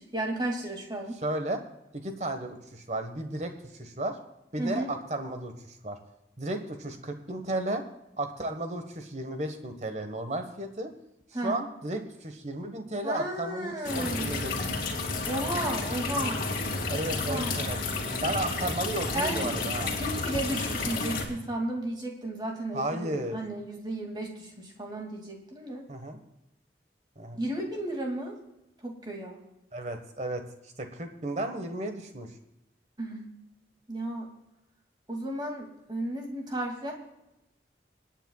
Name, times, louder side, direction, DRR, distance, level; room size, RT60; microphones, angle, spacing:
voice 1, 0.0-1.2 4.6-4.9 11.3-11.6 13.0-14.4 15.3-16.4 17.2-17.6 19.1-19.5 20.0-25.8 27.4-28.4 28.8-29.4 33.0-33.3 33.9-34.3 35.1-36.9, right 1 dB, 25° right, 1 dB, 2.4 m, -33 dB
voice 2, 1.2-1.6 1.9-3.5 3.8-4.2 4.5-6.0 6.4-7.8 8.2-10.9 11.4-14.7 16.9-17.8 18.2-19.9 20.5-20.8 22.7-23.4 25.9-26.2 27.2-27.4 29.7-30.4 30.8-32.3, right 1 dB, 40° right, 6 dB, 1.4 m, -34 dB
sound 1, 13.8-21.2, left 3 dB, 50° left, 2.5 m, -31 dB
27.0 x 9.1 x 2.4 m, 0.91 s
head